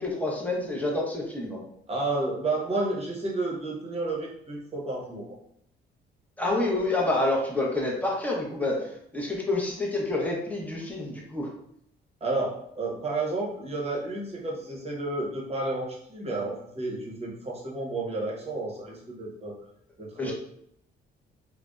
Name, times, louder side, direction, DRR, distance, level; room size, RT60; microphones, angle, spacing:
voice 1, 0.0-1.6 6.4-11.5 20.2-20.3, left 2 dB, 10° left, -2 dB, 0.7 m, -28 dB
voice 2, 1.9-5.2 12.2-19.6 20.0-20.3, right 2 dB, 30° right, -4 dB, 0.8 m, -31 dB
2.6 x 2.1 x 2.2 m, 0.72 s
cardioid pair, 90°, 20 cm